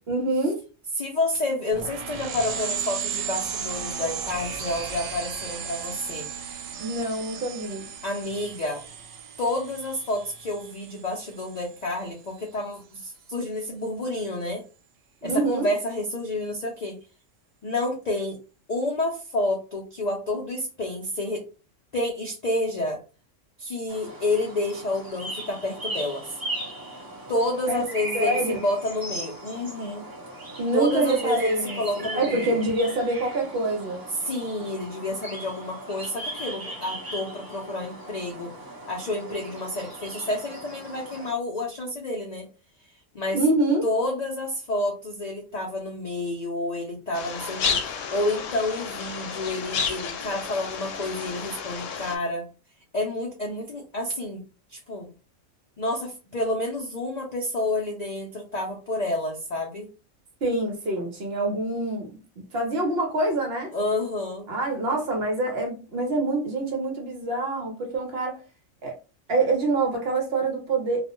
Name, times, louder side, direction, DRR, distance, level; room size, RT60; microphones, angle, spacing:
voice 1, 0.1-0.6 6.8-7.9 15.2-15.7 27.7-27.8 28.1-28.6 30.6-34.0 43.3-43.8 60.4-62.1 62.4-63.7 64.5-68.4 68.8-68.9 69.3-71.0, right 2 dB, 60° right, 0.9 m, -26 dB
voice 2, 1.0-6.3 8.0-8.8 9.4-14.6 15.2-17.0 17.6-18.4 18.7-21.5 21.9-23.0 23.6-26.4 27.3-30.0 30.7-32.6 34.1-38.5 38.9-42.5 43.1-43.4 43.8-52.5 52.9-54.4 54.7-55.1 55.8-59.9 63.7-64.5, left 1 dB, 60° left, 0.4 m, -29 dB
sound 1, 1.7-11.9, right 7 dB, 80° right, 1.0 m, -35 dB
sound 2, 23.9-41.3, right 1 dB, 20° right, 0.7 m, -38 dB
sound 3, 47.1-52.2, left 6 dB, 75° left, 0.9 m, -31 dB
2.4 x 2.1 x 2.9 m
omnidirectional pair, 1.3 m